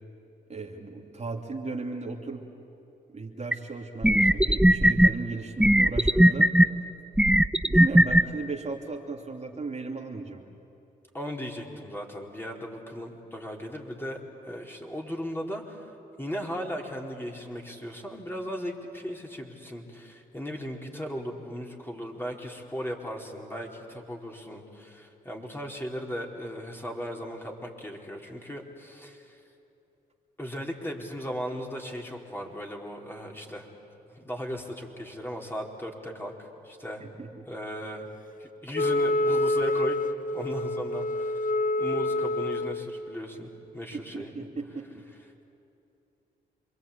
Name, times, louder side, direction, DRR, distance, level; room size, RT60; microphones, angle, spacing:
voice 1, 0.5-2.4 3.1-6.5 7.6-10.4 37.0-37.5 43.9-45.0, right 3 dB, 35° right, 0 dB, 3.0 m, -36 dB
sound 1, 3.5-3.6 4.0-5.1 5.6-6.7 7.2-8.2, right 1 dB, 5° right, 0.7 m, -18 dB
voice 2, 11.1-15.9 16.2-29.4 30.4-33.7 34.1-37.0 37.5-38.1 38.4-40.0 40.3-41.5 41.8-44.3, equal, 10° left, 0 dB, 4.5 m, -37 dB
Wind instrument woodwind instrument, 38.7-42.9, left 2 dB, 45° left, 1.0 m, -27 dB
27.5 x 22.5 x 8.7 m, 2.8 s
supercardioid pair, 50°, 19 cm